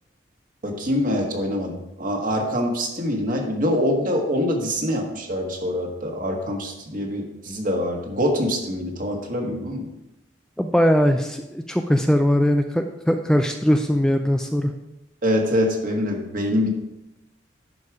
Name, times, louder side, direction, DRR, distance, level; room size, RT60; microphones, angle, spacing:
voice 1, 0.6-9.9 15.2-16.7, equal, 50° right, 1 dB, 1.6 m, -24 dB
voice 2, 10.6-14.7, equal, 5° left, 5 dB, 0.4 m, -20 dB
11.0 x 5.0 x 4.9 m, 0.91 s
head